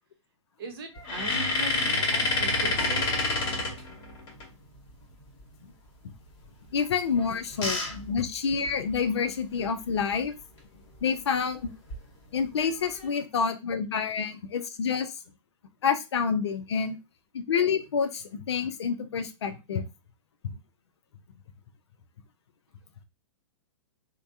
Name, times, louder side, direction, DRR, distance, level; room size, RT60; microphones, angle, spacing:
voice 1, 0.6-3.1, right 3 dB, 50° right, 5 dB, 0.8 m, -39 dB
sound 1, 1.0-4.4 7.1-9.1 9.6-9.7 9.9-10.1 11.6-12.0 12.6-13.1, left 2 dB, 30° left, 1.2 m, -28 dB
voice 2, 6.7-10.3 11.0-11.7 12.3-15.1 15.8-17.0 17.3-19.8, left 6 dB, 60° left, 7 dB, 0.5 m, -28 dB
3.2 x 2.1 x 2.6 m, 0.26 s
figure-of-eight pair, 105°, 16 cm